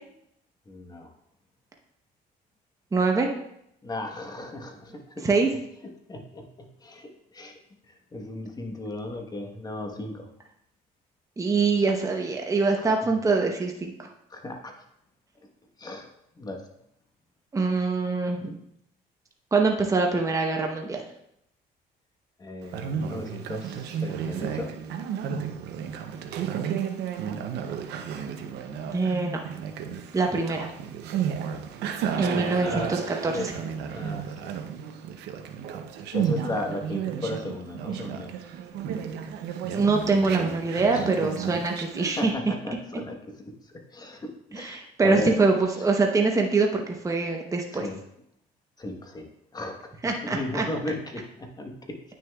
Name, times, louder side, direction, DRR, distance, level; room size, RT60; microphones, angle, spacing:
voice 1, 0.7-1.1 3.8-5.3 6.1-7.6 7.9-10.3 12.7-12.9 14.3-14.7 15.8-16.1 16.4-16.7 22.4-24.7 32.2-32.9 33.3-33.5 33.9-34.5 36.1-38.3 40.9-41.2 42.2-45.4 47.7-48.0 48.8-49.3 49.5-49.9 50.2-52.0, left 2 dB, 25° left, 3 dB, 1.2 m, -36 dB
voice 2, 2.9-3.3 5.2-5.5 11.4-14.1 17.5-18.5 19.5-21.0 28.9-29.4 30.1-30.7 32.2-33.5 39.7-42.3 44.5-47.9 50.0-50.6, right 3 dB, 20° right, 2 dB, 0.8 m, -24 dB
Conversation, 22.6-42.3, right 8 dB, 80° right, 0.7 m, -33 dB
9.3 x 6.4 x 2.3 m, 0.75 s
cardioid pair, 110°, 17 cm